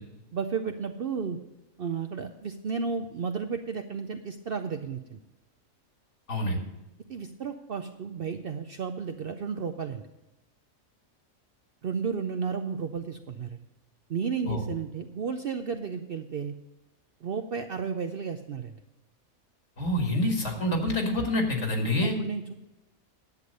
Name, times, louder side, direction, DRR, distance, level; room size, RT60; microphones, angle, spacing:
voice 1, 0.3-1.4 1.8-5.2 7.1-10.0 11.8-13.6 14.1-16.5 17.2-18.8 22.2-22.5, right 6 dB, 55° right, 6 dB, 0.6 m, -33 dB
voice 2, 19.8-22.2, left 1 dB, 60° left, 3 dB, 2.1 m, -27 dB
11.0 x 8.1 x 5.3 m, 0.99 s
omnidirectional pair, 1.4 m